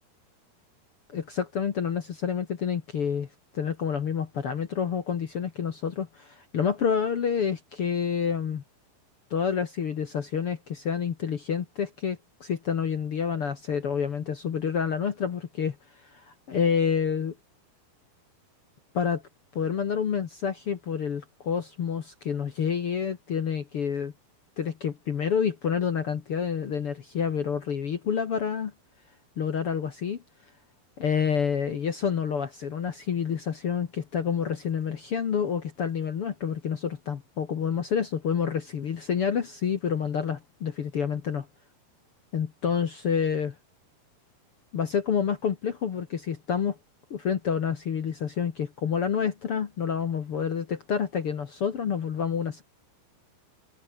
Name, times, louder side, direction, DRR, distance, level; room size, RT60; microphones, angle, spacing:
voice 1, 1.1-3.3 3.5-8.6 9.3-15.8 16.1-17.3 18.9-19.2 19.5-24.1 24.6-28.7 29.4-30.2 31.0-41.5 42.3-43.5 44.7-46.8 47.1-52.6, left 7 dB, 55° left, 1.7 m, -28 dB
omnidirectional pair, 4.6 m